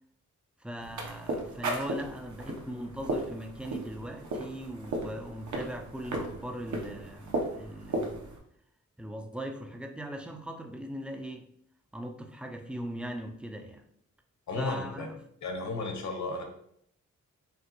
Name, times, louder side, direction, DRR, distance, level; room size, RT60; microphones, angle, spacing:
voice 1, 0.6-8.3 9.0-11.5 11.9-13.9 14.5-15.2, equal, 5° right, 0.3 m, -40 dB
sound 1, 0.8-8.4, right 2 dB, 75° right, 0.9 m, -36 dB
voice 2, 14.5-15.1 15.4-16.4, left 3 dB, 65° left, 0.9 m, -34 dB
5.5 x 2.8 x 2.9 m
wide cardioid pair, 160°, 30 cm